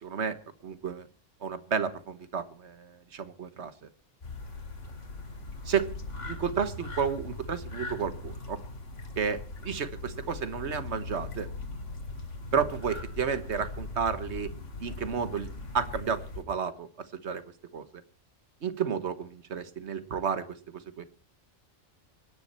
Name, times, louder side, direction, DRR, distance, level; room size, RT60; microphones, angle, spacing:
voice 1, 0.0-0.4 0.6-1.1 1.4-3.7 5.7-5.9 6.2-8.6 9.2-11.5 12.5-14.5 14.8-15.5 15.7-16.9 17.2-17.4 17.7-17.9 18.6-20.6 21.0-21.1, right 6 dB, 70° right, 12 dB, 1.5 m, -31 dB
sound 1, 4.2-16.4, left 3 dB, 85° left, 2.7 m, -40 dB
24.5 x 10.5 x 4.3 m, 0.38 s
omnidirectional pair, 1.2 m